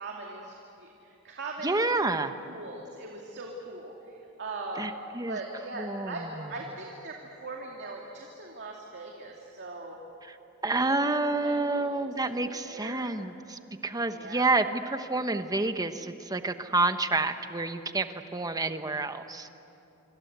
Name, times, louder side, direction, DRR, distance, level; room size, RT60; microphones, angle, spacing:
voice 1, 0.0-1.8 2.5-4.9 5.2-10.0 10.8-13.1 14.1-14.6, right 2 dB, 55° right, -1 dB, 2.6 m, -40 dB
voice 2, 1.6-2.3 4.8-5.4 5.8-6.2 10.6-19.5, right 2 dB, 15° right, 8 dB, 1.1 m, -29 dB
27.0 x 26.5 x 8.2 m, 2.9 s
head